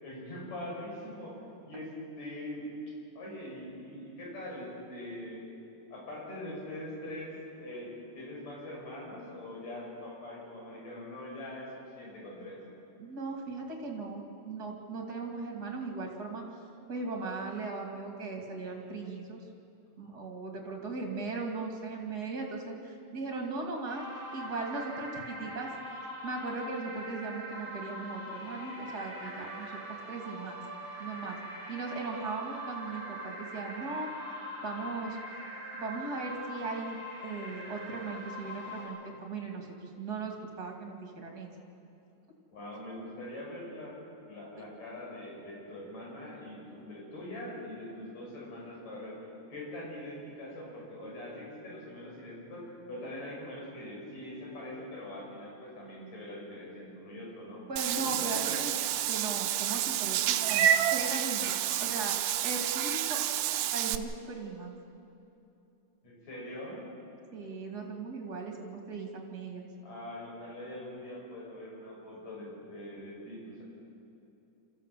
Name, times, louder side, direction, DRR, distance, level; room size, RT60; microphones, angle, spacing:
voice 1, 0.0-1.4 1.7-2.7 3.2-5.4 5.9-12.6 42.5-44.0 44.3-58.5 66.0-66.8 69.8-73.6, left 1 dB, 55° left, -3 dB, 7.0 m, -43 dB
voice 2, 13.0-16.4 16.9-19.4 20.0-24.0 24.3-25.7 26.2-29.8 30.1-30.6 31.0-31.4 31.7-34.3 34.6-35.2 35.7-41.5 57.7-62.1 62.4-63.2 63.7-64.7 67.3-69.6, right 3 dB, 30° right, 1 dB, 2.7 m, -38 dB
sound 1, 23.9-38.9, equal, 80° left, 7.8 m, -42 dB
Meow / Water / Bathtub (filling or washing), 57.8-64.0, right 11 dB, 85° right, 2.2 m, -29 dB
27.0 x 14.5 x 7.7 m, 2.8 s
omnidirectional pair, 3.7 m